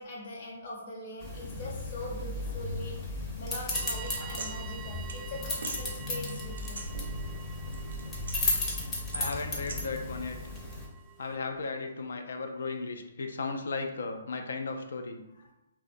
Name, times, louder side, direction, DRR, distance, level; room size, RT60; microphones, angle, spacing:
voice 1, 0.0-6.8 15.4-15.5, left 1 dB, 50° left, -2 dB, 0.8 m, -42 dB
sound 1, 1.2-10.9, left 2 dB, 20° left, 0.6 m, -35 dB
sound 2, 3.7-11.4, right 9 dB, 25° right, 0.3 m, -48 dB
sound 3, 3.9-4.5 5.1-5.2 5.6-5.8 6.3-7.4 7.7-8.6 9.1-9.8, right 4 dB, 85° right, 0.4 m, -40 dB
voice 2, 9.1-10.4 11.2-15.2, left 4 dB, 70° left, 5 dB, 0.3 m, -35 dB
2.7 x 2.1 x 2.5 m, 0.94 s
hypercardioid pair, 145°, 0 cm